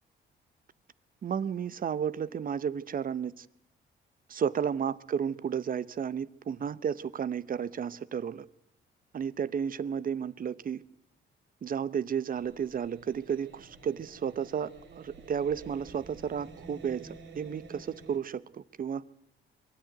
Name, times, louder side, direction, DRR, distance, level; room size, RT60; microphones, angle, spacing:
voice 1, 1.2-3.5 4.3-8.5 9.1-10.8 11.6-19.1, right 7 dB, 45° right, 0.8 m, -33 dB
sound 1, 12.3-18.2, right 3 dB, 65° right, 4.0 m, -51 dB
23.0 x 13.5 x 9.3 m
cardioid pair, 90°, 20 cm